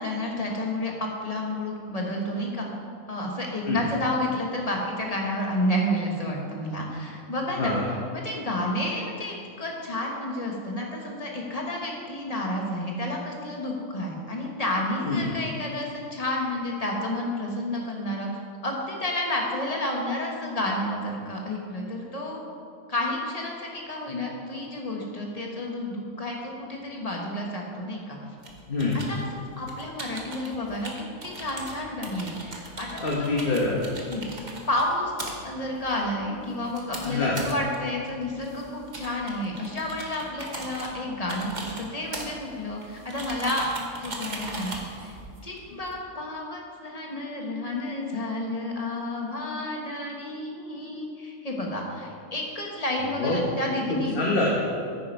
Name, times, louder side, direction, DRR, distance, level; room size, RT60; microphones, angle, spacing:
voice 1, 0.0-2.7 3.1-7.7 8.1-18.3 18.6-22.4 22.9-28.2 29.1-33.3 34.1-34.2 34.7-35.1 35.4-43.7 44.0-45.2 45.4-54.1, left 1 dB, 25° left, -1 dB, 1.5 m, -30 dB
sound 1, 28.4-45.9, right 2 dB, 35° right, 1.3 m, -40 dB
voice 2, 28.7-29.0 33.0-33.8 37.0-37.4 53.2-53.4 53.9-54.5, left 3 dB, 45° left, -4 dB, 1.4 m, -25 dB
9.6 x 9.5 x 4.7 m, 2.3 s
omnidirectional pair, 1.4 m